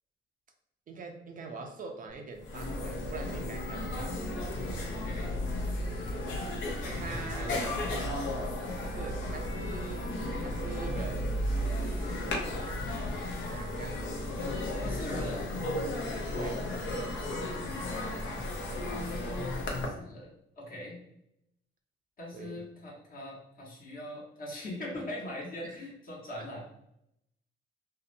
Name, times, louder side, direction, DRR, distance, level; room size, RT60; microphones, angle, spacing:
voice 1, 0.9-4.3 6.9-7.7 8.8-10.1 10.4-11.4 13.5-14.2 16.3-16.7 22.3-22.6 25.6-25.8 26.4-26.5, right 4 dB, 45° right, 3 dB, 0.4 m, -43 dB
sound 1, 2.1-2.2 2.4-19.9, left 1 dB, 75° left, 0.6 m, -34 dB
voice 2, 3.6-4.1 4.9-5.3 6.8-7.8 12.0-12.3 14.8-15.5 19.8-21.0 22.2-26.6, left 1 dB, 45° left, -3 dB, 1.0 m, -42 dB
2.6 x 2.0 x 2.5 m, 0.79 s
cardioid pair, 90°, 20 cm